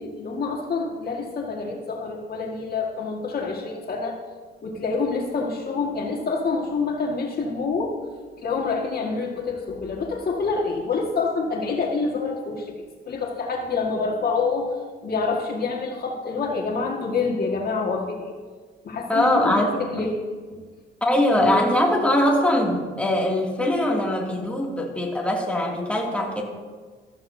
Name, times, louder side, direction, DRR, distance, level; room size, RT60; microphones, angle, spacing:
voice 1, 0.0-4.2 4.6-8.0 8.4-14.7 15.0-18.3 18.8-20.2 20.5-20.6 21.3-21.7, left 4 dB, 50° left, 0 dB, 1.8 m, -27 dB
voice 2, 19.1-20.1 21.0-26.4, left 1 dB, 5° left, -2 dB, 2.4 m, -22 dB
14.5 x 13.5 x 2.7 m, 1.4 s
cardioid pair, 90°, 20 cm